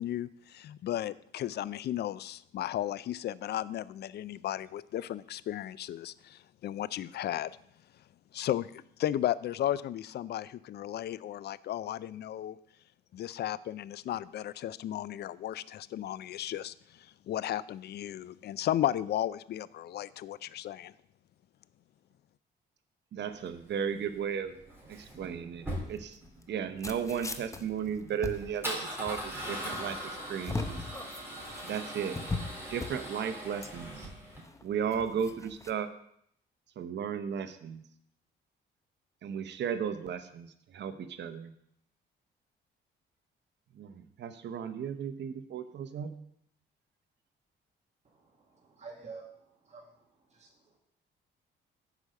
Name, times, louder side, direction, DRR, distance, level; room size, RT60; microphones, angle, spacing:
voice 1, 0.0-7.5 8.3-12.6 13.1-20.9, left 12 dB, 55° left, 19 dB, 0.4 m, -34 dB
voice 2, 23.1-24.6 24.9-26.2 26.5-30.8 31.6-32.2 32.7-34.1 34.6-35.9 36.8-37.8 39.2-41.5 43.7-46.1, right 7 dB, 60° right, 10 dB, 0.8 m, -35 dB
Male speech man speaking / Car / Engine starting, 23.3-34.4, equal, 10° right, 3.7 m, -41 dB
sound 1, 25.9-35.7, left 3 dB, 15° left, 0.7 m, -41 dB
voice 3, 48.1-50.8, right 4 dB, 35° right, -1 dB, 1.6 m, -50 dB
8.4 x 5.1 x 6.4 m, 0.71 s
cardioid pair, 90°, 20 cm